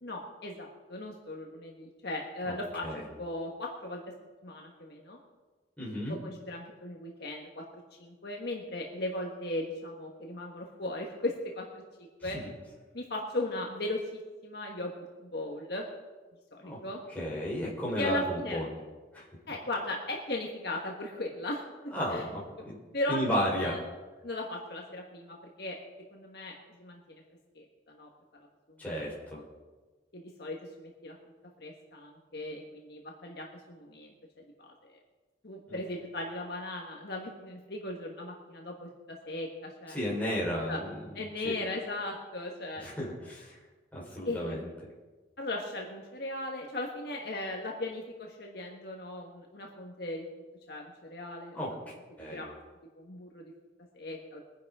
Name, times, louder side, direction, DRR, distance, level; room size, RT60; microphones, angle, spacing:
voice 1, 0.0-2.9 3.2-4.0 4.4-5.2 6.1-12.4 12.9-15.9 16.5-17.0 18.0-18.6 19.5-21.6 22.1-22.3 22.9-23.8 24.2-25.8 26.1-27.2 27.5-28.1 28.7-29.1 29.4-29.5 30.1-31.2 31.6-35.0 35.4-40.1 40.7-40.8 41.1-42.9 44.2-44.7 45.4-50.3 50.7-51.6 52.3-52.5 53.0-53.5 53.9-54.4, left 1 dB, 55° left, 0 dB, 1.5 m, -37 dB
voice 2, 5.8-6.2 12.2-12.3 16.6-16.8 17.1-18.7 19.1-19.2 21.9-22.8 23.1-23.7 28.8-29.4 35.7-35.8 39.9-41.0 41.4-41.6 42.8-43.6 43.9-44.6 51.5-51.7 52.2-52.4, equal, 10° left, -6 dB, 4.3 m, -33 dB
22.0 x 10.5 x 3.7 m, 1.3 s
head